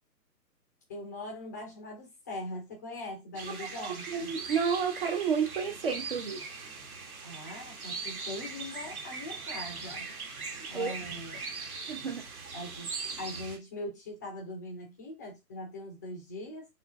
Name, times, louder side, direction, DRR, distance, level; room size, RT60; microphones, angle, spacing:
voice 1, 0.9-4.4 7.2-10.1 10.7-11.4 12.5-16.6, left 1 dB, 10° left, 0.5 m, -41 dB
sound 1, 3.3-13.6, right 4 dB, 55° right, 1.3 m, -40 dB
voice 2, 3.8-6.4 10.6-10.9 11.9-12.2, right 6 dB, 35° right, 0.6 m, -31 dB
3.8 x 3.0 x 3.3 m
figure-of-eight pair, 130°, 50 cm